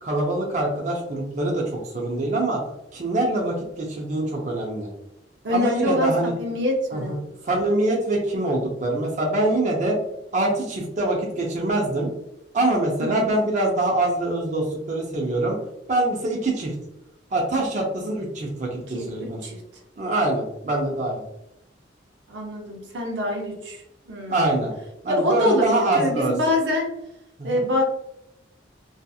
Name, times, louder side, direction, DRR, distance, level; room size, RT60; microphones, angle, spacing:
voice 1, 0.0-2.6 2.9-4.9 5.5-6.3 6.9-7.2 7.4-10.0 10.3-12.1 12.5-15.6 15.9-16.7 17.3-19.4 20.0-21.2 24.3-24.7 25.0-26.3 27.4-27.6, right 2 dB, 40° right, -2 dB, 0.5 m, -24 dB
voice 2, 5.4-6.1 6.4-7.2 13.0-13.1 18.9-19.6 22.3-24.6 25.1-26.9 27.4-27.8, left 1 dB, 80° right, 0 dB, 0.6 m, -25 dB
2.7 x 2.4 x 2.3 m, 0.83 s
head